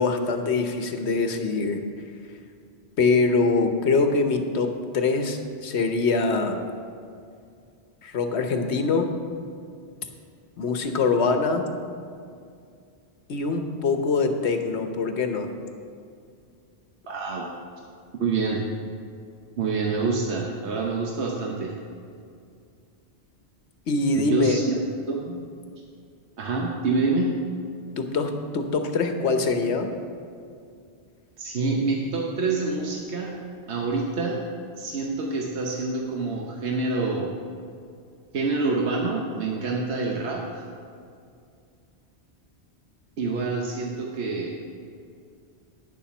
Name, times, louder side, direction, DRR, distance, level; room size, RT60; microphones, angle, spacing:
voice 1, 0.0-1.8 3.0-6.6 8.0-9.1 10.6-11.7 13.3-15.5 23.9-24.6 28.0-29.9, left 3 dB, 80° left, 6 dB, 1.2 m, -23 dB
voice 2, 17.1-17.4 18.2-18.6 19.6-21.8 24.1-25.4 26.4-27.4 31.4-33.4 33.7-34.4 34.7-37.3 38.3-40.6 43.2-44.5, right 3 dB, 85° right, -1 dB, 1.2 m, -27 dB
9.9 x 7.1 x 6.0 m, 2.3 s
omnidirectional pair, 1.1 m